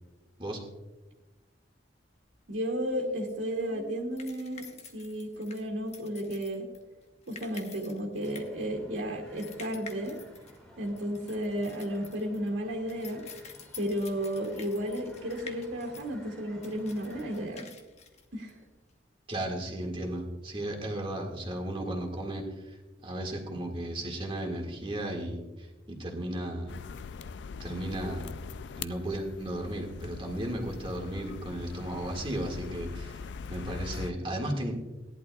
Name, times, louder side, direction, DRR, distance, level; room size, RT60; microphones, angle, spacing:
sound 1, 2.2-19.0, left 5 dB, 35° left, 1.1 m, -50 dB
voice 1, 2.5-4.7 4.9-6.7 7.3-10.2 10.8-13.2 13.8-17.7 18.3-18.6, equal, 80° right, -2 dB, 2.3 m, -33 dB
sound 2, 8.2-17.5, equal, 5° left, 2.1 m, -54 dB
voice 2, 19.3-26.8 27.6-28.4 28.8-34.7, right 1 dB, 30° right, 1 dB, 2.0 m, -35 dB
sound 3, 26.7-34.1, left 5 dB, 70° left, 0.4 m, -41 dB
17.5 x 11.0 x 2.3 m, 1.1 s
head